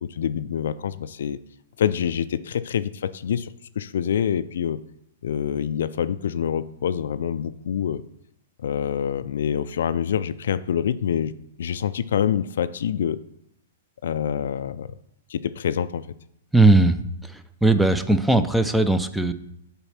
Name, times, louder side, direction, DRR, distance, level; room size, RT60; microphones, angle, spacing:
voice 1, 0.0-1.4 1.8-4.8 5.2-8.0 8.6-11.3 11.6-13.2 14.0-14.9 15.3-16.1, left 8 dB, 70° left, 14 dB, 0.4 m, -26 dB
voice 2, 16.5-17.0 17.6-19.3, right 2 dB, 5° right, 10 dB, 0.5 m, -18 dB
7.0 x 4.1 x 5.7 m, 0.79 s
hypercardioid pair, 115°, 0 cm